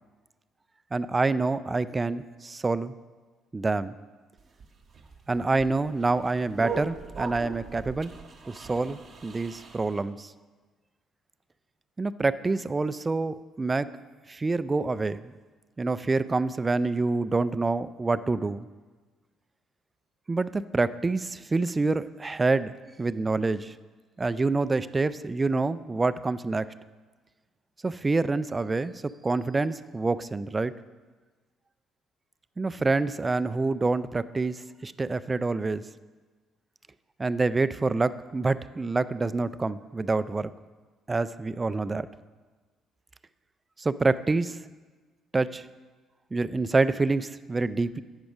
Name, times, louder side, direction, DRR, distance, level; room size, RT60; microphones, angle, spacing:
voice 1, 0.9-2.9 3.5-3.9 5.3-8.1 8.5-10.3 12.0-13.9 14.3-15.3 15.8-18.7 20.3-22.7 23.0-23.7 24.2-26.7 27.8-30.7 32.6-35.8 37.2-40.5 41.1-42.1 43.8-44.6 45.3-45.7 46.3-48.0, right 3 dB, 25° right, 15 dB, 0.3 m, -27 dB
sound 1, 4.4-10.0, right 5 dB, 45° right, 0.9 m, -40 dB
8.1 x 6.0 x 5.0 m, 1.3 s
figure-of-eight pair, 45°, 0 cm